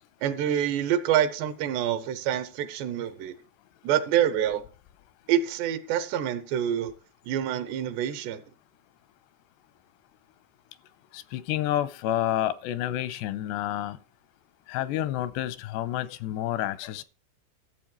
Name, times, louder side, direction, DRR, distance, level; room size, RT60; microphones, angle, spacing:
voice 1, 0.2-3.3 3.8-4.6 5.3-6.9 7.2-8.4, right 10 dB, 80° right, 3.3 m, -26 dB
voice 2, 11.1-14.0 14.7-17.0, left 12 dB, 90° left, 2.9 m, -29 dB
14.0 x 7.5 x 4.5 m
omnidirectional pair, 4.9 m